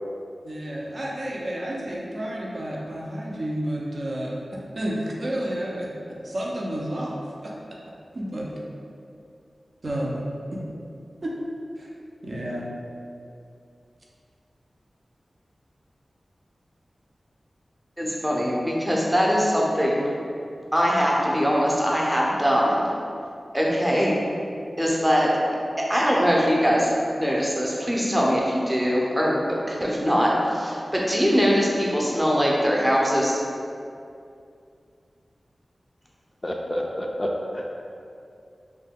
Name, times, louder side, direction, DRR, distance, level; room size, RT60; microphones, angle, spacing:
voice 1, 0.4-4.3 4.7-5.9 6.2-7.2 7.4-7.5 8.1-8.5 9.8-10.2 10.5-10.6 11.2-11.3 11.8-11.9 12.2-12.6, right 1 dB, 60° right, -4 dB, 0.5 m, -30 dB
voice 2, 18.0-20.0 20.7-22.9 23.5-24.2 24.8-26.9 27.1-29.4 29.7-33.4, equal, 10° right, -4 dB, 0.6 m, -22 dB
voice 3, 36.4-37.7, equal, 35° left, -1 dB, 0.3 m, -29 dB
2.7 x 2.2 x 3.6 m, 2.4 s
wide cardioid pair, 60°, 0 cm